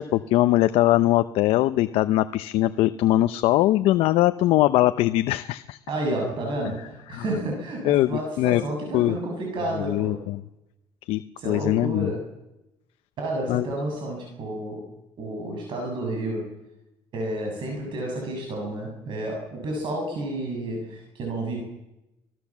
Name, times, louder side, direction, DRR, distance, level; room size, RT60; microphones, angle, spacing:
voice 1, 0.0-5.8 7.1-7.2 7.8-8.6 8.9-9.2 9.8-10.4 11.1-12.1 13.5-13.7, left 15 dB, 80° left, 11 dB, 0.7 m, -21 dB
voice 2, 5.9-10.2 11.4-12.2 13.2-14.8 15.2-16.5 17.1-21.6, right 1 dB, 60° right, 1 dB, 7.3 m, -30 dB
25.5 x 18.5 x 7.4 m, 0.92 s
cardioid pair, 115°, 10 cm